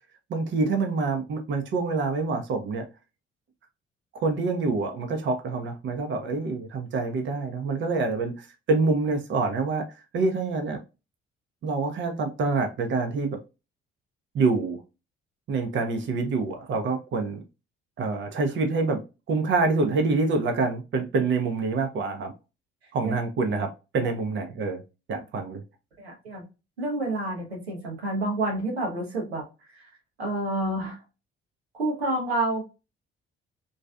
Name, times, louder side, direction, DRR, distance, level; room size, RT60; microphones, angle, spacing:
voice 1, 0.3-2.8 4.1-9.8 10.1-10.8 11.6-13.4 14.3-14.8 15.5-17.4 18.0-19.0 19.3-22.3 22.9-24.8 25.1-25.6, right 3 dB, 40° right, 0.7 m, -26 dB
voice 2, 26.0-26.4 26.8-29.4 29.7-29.8 30.2-31.0 31.7-32.6, right 2 dB, 80° right, 0.8 m, -29 dB
3.1 x 2.6 x 2.3 m
figure-of-eight pair, 45°, 31 cm